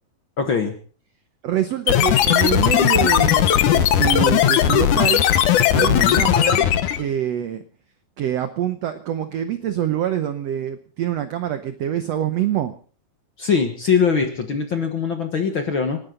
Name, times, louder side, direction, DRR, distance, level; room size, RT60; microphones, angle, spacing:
voice 1, 0.4-0.8 5.7-6.2 13.4-16.0, left 6 dB, 50° left, 5 dB, 1.5 m, -22 dB
voice 2, 1.4-5.2 5.7-6.7 7.0-7.6 8.2-12.7, right 10 dB, 85° right, 9 dB, 1.4 m, -25 dB
sound 1, 1.9-7.0, left 11 dB, 65° left, 2.3 m, -17 dB
28.5 x 12.0 x 3.9 m, 0.41 s
omnidirectional pair, 4.1 m